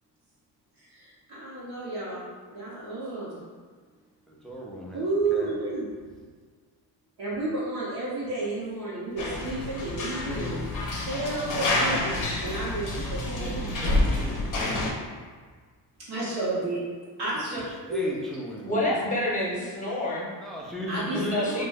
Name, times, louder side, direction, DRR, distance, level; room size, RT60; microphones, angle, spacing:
voice 1, 0.8-3.4 4.9-5.8 7.2-10.6 11.0-13.7 16.1-16.8 17.2-17.6 17.9-18.1 20.9-21.5, right 2 dB, 60° right, -8 dB, 0.9 m, -31 dB
voice 2, 4.3-5.5 13.3-14.9 17.5-19.1 20.4-21.6, equal, ahead, -4 dB, 0.4 m, -37 dB
sound 1, 9.2-14.9, left 2 dB, 45° left, 0.6 m, -28 dB
voice 3, 18.7-20.3 21.1-21.6, left 1 dB, 20° left, -5 dB, 0.9 m, -28 dB
2.5 x 2.2 x 3.2 m, 1.5 s
cardioid pair, 95°, 42 cm